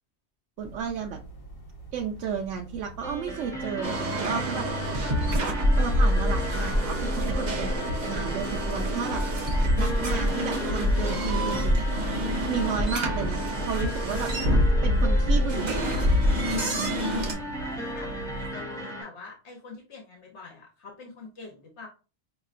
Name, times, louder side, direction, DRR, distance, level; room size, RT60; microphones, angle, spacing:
sound 1, 0.6-18.5, right 1 dB, 50° left, 1.4 m, -39 dB
voice 1, 0.6-1.2 1.9-5.0 5.8-9.2 9.8-11.9 12.5-14.3 14.8-16.1, right 7 dB, 90° right, 2 dB, 0.9 m, -33 dB
sound 2, 3.0-19.0, equal, 5° left, 0.9 m, -35 dB
sound 3, 3.8-17.3, equal, 40° right, 0.9 m, -26 dB
voice 2, 17.6-21.9, left 3 dB, 70° left, 1 dB, 1.1 m, -45 dB
5.4 x 2.9 x 2.4 m, 0.33 s
omnidirectional pair, 1.2 m